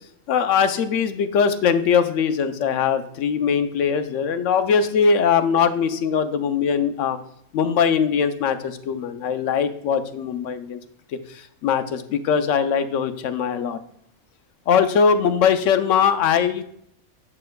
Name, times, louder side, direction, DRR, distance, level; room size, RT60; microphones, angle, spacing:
voice 1, 0.3-7.2 7.5-10.8 11.3-13.8 14.7-16.6, left 6 dB, 70° left, 10 dB, 0.9 m, -21 dB
7.4 x 6.4 x 2.2 m, 0.71 s
omnidirectional pair, 1.5 m